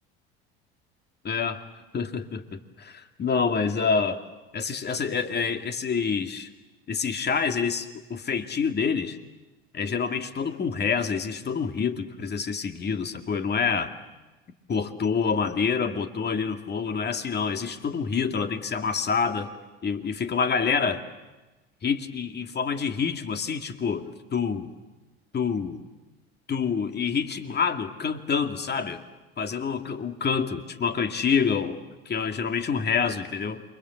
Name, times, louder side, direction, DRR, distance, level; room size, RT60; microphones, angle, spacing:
voice 1, 1.2-1.6 1.9-2.9 3.2-4.2 4.5-6.5 6.9-9.2 9.7-13.9 14.7-19.5 19.8-21.0 21.8-24.7 25.3-25.8 26.5-29.0 29.4-31.8 32.1-33.6, left 6 dB, 35° left, 7 dB, 2.5 m, -27 dB
28.0 x 24.5 x 8.2 m, 1.1 s
hypercardioid pair, 75°, 31 cm